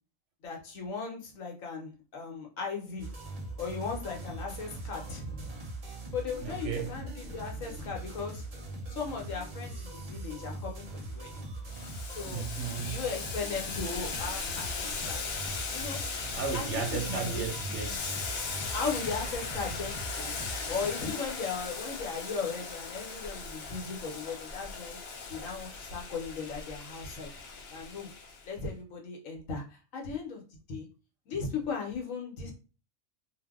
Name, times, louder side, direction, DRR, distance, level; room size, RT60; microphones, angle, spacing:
voice 1, 0.4-3.1 3.6-5.5 6.1-8.4 8.9-11.4 12.1-12.4 12.8-15.2 15.7-16.0 16.5-17.4 18.7-20.3 20.7-25.0 25.3-27.3 27.7-28.1 28.5-29.6 29.9-30.4 30.7-30.9 31.3-32.5, left 5 dB, 80° left, 1.3 m, -37 dB
sound 1, 3.0-20.9, right 2 dB, 40° right, 0.6 m, -41 dB
voice 2, 6.4-6.9 12.2-13.0 16.3-18.2, right 6 dB, 70° right, 0.8 m, -35 dB
Boiling, 11.7-28.5, left 4 dB, 60° left, 0.7 m, -38 dB
2.7 x 2.0 x 3.5 m
omnidirectional pair, 1.4 m